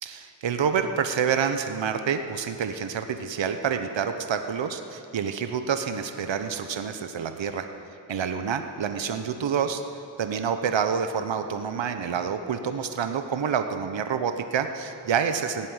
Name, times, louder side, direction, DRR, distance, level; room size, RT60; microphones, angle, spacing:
voice 1, 0.0-7.7 8.1-9.8 10.2-15.7, right 7 dB, 75° right, 8 dB, 0.9 m, -28 dB
17.0 x 7.6 x 9.7 m, 2.8 s
cardioid pair, 60°, 45 cm